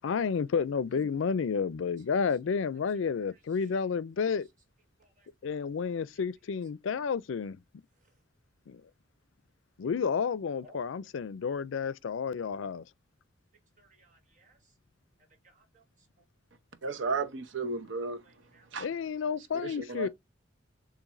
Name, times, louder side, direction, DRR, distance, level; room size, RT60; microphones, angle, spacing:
voice 1, 0.0-4.5 5.4-7.6 8.7-8.8 9.8-12.8 18.8-20.1, left 6 dB, 90° left, 0.4 m, -31 dB
voice 2, 13.8-14.6 15.4-15.8 18.2-18.7, right 2 dB, 40° right, 1.7 m, -58 dB
voice 3, 16.8-18.2 18.7-18.9 19.6-20.1, right 4 dB, 80° right, 0.9 m, -33 dB
7.0 x 2.6 x 2.6 m
head